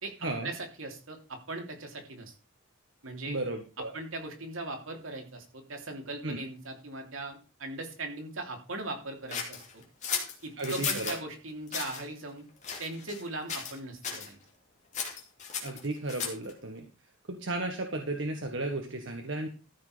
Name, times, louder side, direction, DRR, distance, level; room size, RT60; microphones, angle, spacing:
voice 1, 0.4-2.3 3.0-3.4 3.9-9.8 10.4-12.5 12.8-14.4, right 2 dB, 85° right, 3 dB, 3.0 m, -39 dB
voice 2, 3.3-3.9 6.2-6.4 10.6-11.2 15.6-16.8 17.3-19.5, right 2 dB, 65° right, 4 dB, 1.5 m, -34 dB
sound 1, 9.3-11.2 11.7-12.0 12.6-13.2 13.5-13.8 14.0-14.3 14.9-16.5, left 6 dB, 35° left, 2.9 m, -35 dB
14.0 x 6.4 x 5.1 m, 0.33 s
head